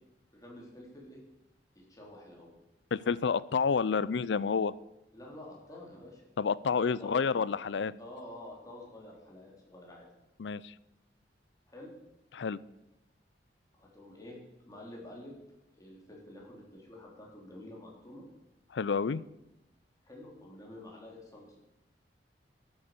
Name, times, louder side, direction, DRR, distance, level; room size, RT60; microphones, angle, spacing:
voice 1, 0.3-1.2 1.8-2.5 5.1-6.2 6.7-7.2 8.0-10.1 11.7-11.9 13.8-15.4 15.7-18.2 20.0-21.6, left 1 dB, 20° left, -2 dB, 3.8 m, -49 dB
voice 2, 2.9-4.7 6.4-7.9 10.4-10.7 12.3-12.6 18.7-19.2, left 5 dB, 90° left, 20 dB, 0.5 m, -29 dB
12.5 x 8.9 x 6.7 m, 0.93 s
head